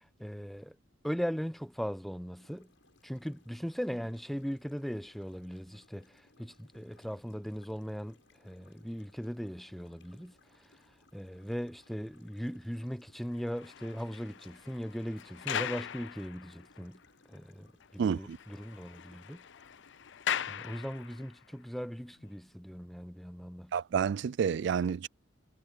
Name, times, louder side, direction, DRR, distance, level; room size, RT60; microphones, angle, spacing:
voice 1, 0.2-0.7 1.0-2.7 3.0-6.1 6.4-8.2 8.4-10.3 11.1-17.0 17.3-17.7 17.9-19.4 20.5-23.7, equal, ahead, 0.8 m, -38 dB
sound 1, 2.4-21.3, left 3 dB, 85° left, 7.1 m, -65 dB
sound 2, 13.3-17.0 17.3-17.4 17.8-17.9 18.2-21.4 22.1-22.3, left 9 dB, 70° left, 0.5 m, -40 dB
voice 2, 18.0-18.4 23.7-25.1, right 7 dB, 65° right, 0.3 m, -29 dB
head